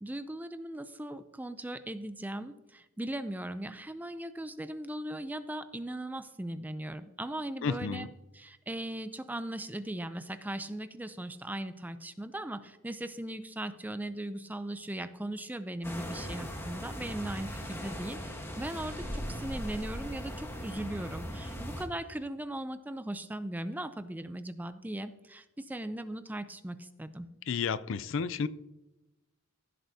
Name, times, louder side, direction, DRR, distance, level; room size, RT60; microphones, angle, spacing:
voice 1, 0.0-8.1 8.3-27.3, right 1 dB, 10° right, 11 dB, 0.4 m, -38 dB
voice 2, 7.6-8.1 27.5-28.5, left 5 dB, 60° left, 16 dB, 0.4 m, -31 dB
sound 1, 15.8-21.8, equal, 10° left, 1.2 m, -39 dB
15.5 x 7.7 x 2.7 m, 1.0 s
head